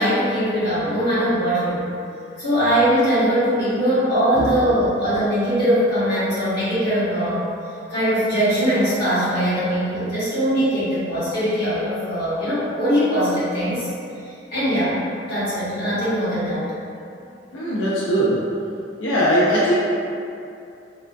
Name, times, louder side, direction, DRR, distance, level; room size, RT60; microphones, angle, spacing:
voice 1, 0.0-1.9 2.4-7.4 7.9-13.9 14.5-15.0 15.2-16.7, equal, 55° left, -13 dB, 1.5 m, -21 dB
voice 2, 17.5-18.4 19.0-19.7, equal, 85° left, -8 dB, 0.5 m, -19 dB
3.5 x 2.1 x 2.5 m, 2.6 s
head